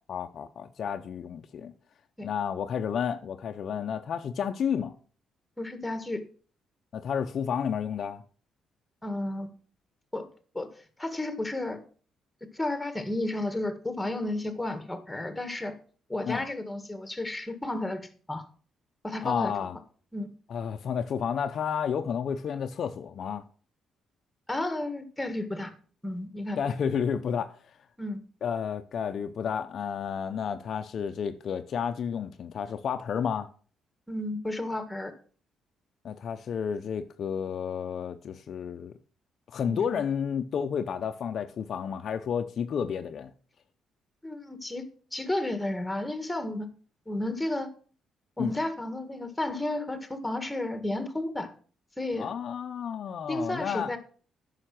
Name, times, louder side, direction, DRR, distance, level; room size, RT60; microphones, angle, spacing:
voice 1, 0.1-1.7 2.2-4.9 6.9-8.2 16.2-16.4 19.2-19.8 20.5-23.5 26.6-27.6 28.4-33.5 36.0-38.9 39.5-43.3 48.4-48.5 52.2-53.9, left 7 dB, 60° left, 0.7 m, -31 dB
voice 2, 5.6-6.2 9.0-9.5 10.1-10.3 10.5-10.7 11.0-11.8 12.5-15.7 16.1-18.4 19.0-19.5 20.1-20.3 24.5-25.7 26.0-26.6 28.0-28.2 34.1-35.1 39.7-40.0 44.2-44.8 45.1-46.7 47.1-47.7 48.4-51.5 52.0-52.3 53.3-54.0, left 1 dB, 10° left, 1.7 m, -32 dB
10.0 x 5.8 x 5.9 m
cardioid pair, 90°, 0 cm